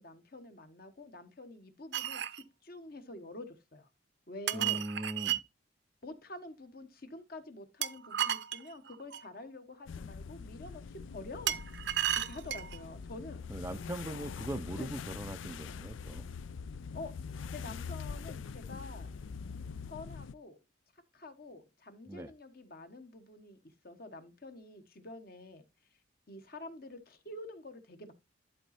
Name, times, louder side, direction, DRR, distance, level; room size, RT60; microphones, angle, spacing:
voice 1, 0.0-3.9 4.3-4.8 6.0-11.6 12.2-13.4 14.8-14.9 16.9-19.1 19.8-20.6 21.1-23.6 23.8-25.6 26.3-28.1, left 2 dB, 50° left, 1.2 m, -47 dB
sound 1, 1.9-2.4 4.5-5.4 7.8-9.3 11.5-12.8, right 11 dB, 60° right, 0.6 m, -33 dB
voice 2, 4.5-5.4 13.5-16.3 22.1-22.3, right 1 dB, 15° right, 0.4 m, -40 dB
sound 2, 9.9-20.3, left 5 dB, 75° left, 0.4 m, -43 dB
11.5 x 4.1 x 4.2 m
head